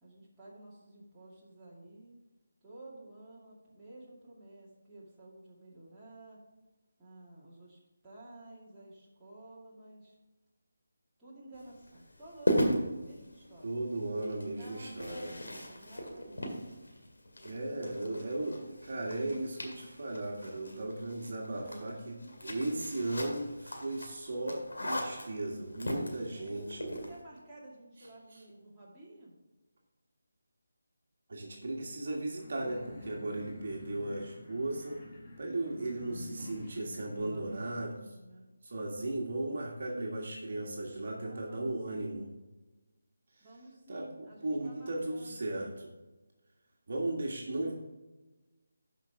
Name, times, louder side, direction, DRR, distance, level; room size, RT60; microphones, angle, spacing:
voice 1, 0.0-2.2 2.6-6.4 7.0-10.2 11.2-13.8 14.5-16.8 17.8-18.8 21.5-22.9 25.8-26.6 27.1-29.3 33.6-34.1 37.3-38.5 41.1-42.2 43.4-45.5, right 1 dB, 10° right, -10 dB, 2.4 m, -53 dB
sound 1, 11.5-27.2, equal, 75° left, 2.0 m, -38 dB
voice 2, 13.6-15.3 17.4-18.6 18.9-22.2 22.4-26.9 31.3-35.0 35.4-37.9 38.6-42.3 43.9-45.9 46.9-47.7, right 2 dB, 50° right, -1 dB, 1.7 m, -36 dB
sound 2, 32.3-37.7, equal, 20° left, 2.2 m, -48 dB
12.0 x 5.3 x 3.6 m, 1.1 s
figure-of-eight pair, 160°, 0 cm